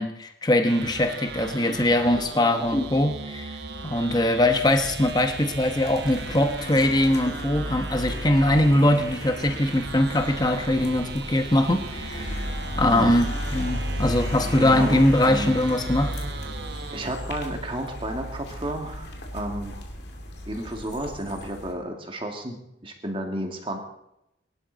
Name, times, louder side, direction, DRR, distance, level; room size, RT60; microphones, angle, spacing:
voice 1, 0.0-3.5 3.8-12.4 12.8-13.3 13.5-16.1, left 1 dB, 20° left, 6 dB, 1.0 m, -22 dB
sound 1, 0.7-17.1, right 4 dB, 60° right, 1.1 m, -38 dB
sound 2, 4.6-21.7, left 1 dB, 60° left, 2.4 m, -35 dB
voice 2, 14.6-15.6 16.9-19.7 20.5-22.5 22.8-23.8, right 1 dB, 30° right, 3 dB, 2.1 m, -32 dB
22.0 x 12.0 x 4.0 m, 0.83 s
head